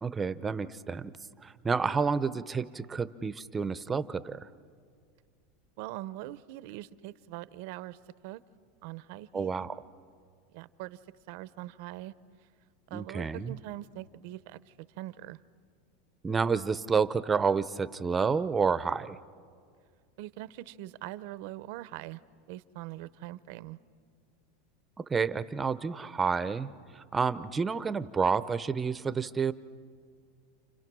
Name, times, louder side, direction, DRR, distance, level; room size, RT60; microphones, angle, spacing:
voice 1, 0.0-1.1 1.4-4.5 9.3-9.8 12.9-13.6 16.2-19.2 25.1-29.5, right 5 dB, 20° right, 14 dB, 0.8 m, -29 dB
voice 2, 5.8-8.0 8.2-8.4 8.8-9.5 10.5-11.0 11.3-12.1 12.9-15.4 20.2-22.2 22.5-23.8, right 15 dB, 65° right, 16 dB, 0.7 m, -42 dB
29.5 x 28.5 x 6.2 m, 2.1 s
supercardioid pair, 115°, 0 cm